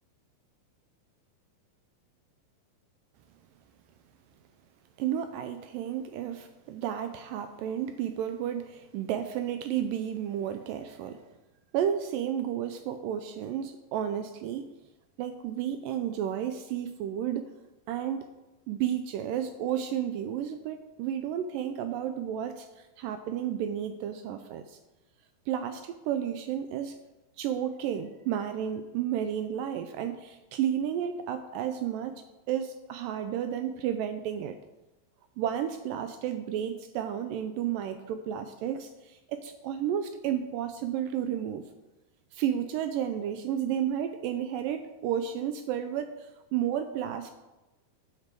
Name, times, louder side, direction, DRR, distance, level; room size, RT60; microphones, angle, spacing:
voice 1, 5.0-11.2 11.7-14.7 15.2-17.5 17.9-18.3 18.7-24.8 25.5-27.0 27.4-34.6 35.4-41.6 42.3-47.3, right 9 dB, 80° right, 8 dB, 2.1 m, -32 dB
13.5 x 6.7 x 4.6 m, 1.1 s
omnidirectional pair, 4.2 m